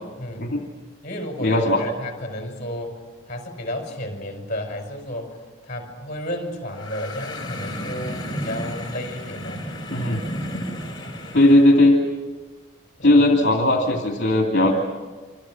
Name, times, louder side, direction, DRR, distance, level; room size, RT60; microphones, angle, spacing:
voice 1, 0.2-0.6 1.0-3.0 3.3-5.3 5.6-9.7 13.0-13.2, left 1 dB, 35° left, 4 dB, 5.4 m, -32 dB
voice 2, 1.4-1.8 9.9-10.2 11.3-12.0 13.0-14.7, left 1 dB, 55° left, 1 dB, 2.8 m, -17 dB
sound 1, 6.7-11.7, equal, 20° left, 4.5 m, -32 dB
28.0 x 26.5 x 6.3 m, 1.4 s
head